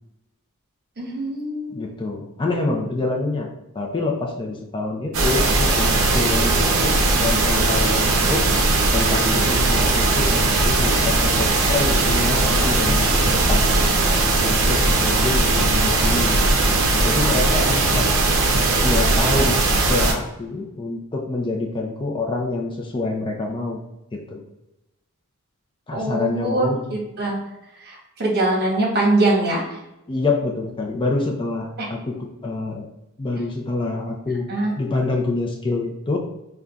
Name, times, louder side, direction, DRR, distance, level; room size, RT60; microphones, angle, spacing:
voice 1, 1.0-2.0 25.9-27.4 27.8-29.6 31.8-31.9 34.5-34.7, right 2 dB, 45° right, -2 dB, 1.0 m, -23 dB
voice 2, 1.7-3.5 3.7-8.5 8.9-13.6 14.4-16.4 16.7-18.2 18.8-19.6 19.9-23.8 24.1-24.4 25.9-26.8 30.1-32.9 33.2-34.4 34.8-36.2, left 3 dB, 20° left, 0 dB, 0.4 m, -26 dB
sound 1, 5.1-20.1, right 2 dB, 65° right, 0.6 m, -19 dB
5.2 x 2.2 x 2.4 m, 0.92 s
head